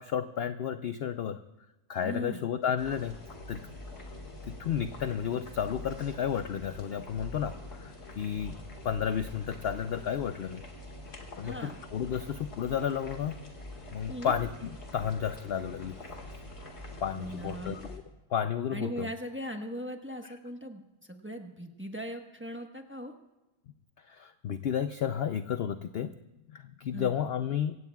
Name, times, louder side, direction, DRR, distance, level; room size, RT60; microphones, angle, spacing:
voice 1, 0.0-1.4 1.9-3.1 3.5-3.6 4.5-8.6 8.8-10.6 11.4-13.3 13.9-15.9 17.0-18.0 18.3-19.1 24.1-26.1 26.5-27.8, left 8 dB, 65° left, 10 dB, 0.6 m, -32 dB
voice 2, 2.0-2.4 11.4-11.8 14.1-14.3 17.1-17.8 18.7-23.1 26.9-27.1, equal, 10° right, 3 dB, 1.0 m, -39 dB
sound 1, 2.8-18.0, left 1 dB, 45° left, 2.1 m, -45 dB
25.0 x 16.5 x 2.3 m, 1.0 s
omnidirectional pair, 1.6 m